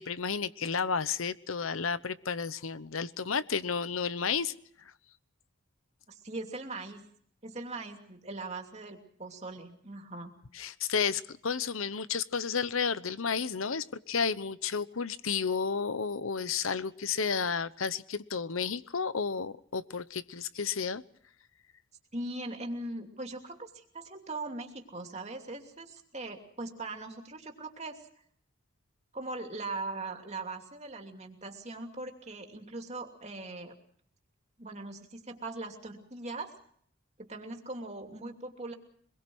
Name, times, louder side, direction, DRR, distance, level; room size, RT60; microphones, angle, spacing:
voice 1, 0.0-4.5 10.5-21.0, left 6 dB, 80° left, 15 dB, 0.9 m, -32 dB
voice 2, 6.1-7.0 7.4-10.3 20.5-20.6 22.1-28.0 29.1-33.7 34.6-36.5 37.2-38.7, right 2 dB, 30° right, 3 dB, 2.8 m, -40 dB
25.5 x 22.0 x 6.2 m, 0.62 s
head